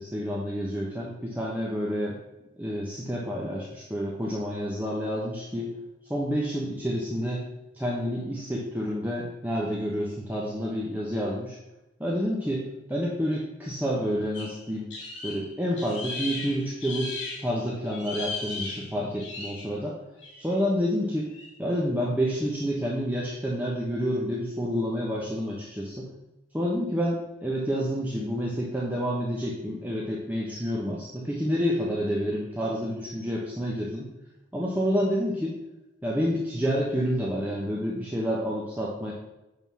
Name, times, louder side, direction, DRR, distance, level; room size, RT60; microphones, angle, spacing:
voice 1, 0.0-2.2 2.6-5.7 6.1-7.5 7.7-11.6 12.0-14.9 15.2-17.1 17.4-20.0 20.4-21.3 21.6-26.1 26.5-34.1 34.5-35.6 36.0-39.1, equal, 10° right, -4 dB, 1.1 m, -29 dB
sound 1, 14.3-17.5 17.9-19.7 20.2-20.5 21.3-21.5, left 3 dB, 75° left, 3.2 m, -37 dB
9.2 x 4.0 x 6.2 m, 0.98 s
head